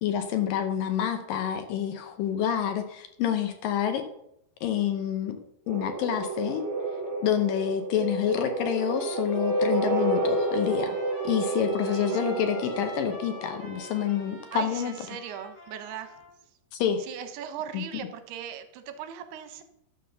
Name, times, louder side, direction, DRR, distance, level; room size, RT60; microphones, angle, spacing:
voice 1, 0.0-4.0 4.6-5.4 5.7-6.7 7.2-11.0 11.2-14.9 16.7-17.1 17.7-17.8, left 9 dB, 80° left, 7 dB, 2.0 m, -28 dB
sound 1, 5.7-14.3, right 2 dB, 40° right, 4.5 m, -30 dB
Trumpet, 8.7-16.3, left 2 dB, 55° left, 6.1 m, -46 dB
voice 2, 11.8-12.2 14.5-16.1 17.1-19.6, right 9 dB, 75° right, 9 dB, 2.8 m, -39 dB
12.0 x 6.0 x 6.7 m, 0.77 s
omnidirectional pair, 4.9 m